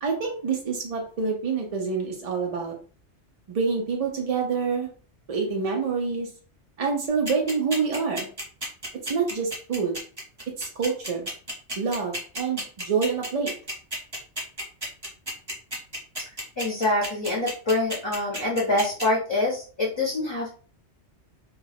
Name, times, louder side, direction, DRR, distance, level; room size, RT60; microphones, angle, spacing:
voice 1, 0.0-2.7 3.5-4.9 5.3-6.3 6.8-8.3 9.1-10.0 10.6-11.3 11.8-13.5, right 5 dB, 60° right, 1 dB, 0.4 m, -27 dB
sound 1, 7.3-19.0, equal, 20° right, 0.9 m, -32 dB
voice 2, 16.6-20.5, left 2 dB, 30° left, -6 dB, 0.7 m, -25 dB
2.3 x 2.2 x 3.3 m, 0.40 s
omnidirectional pair, 1.2 m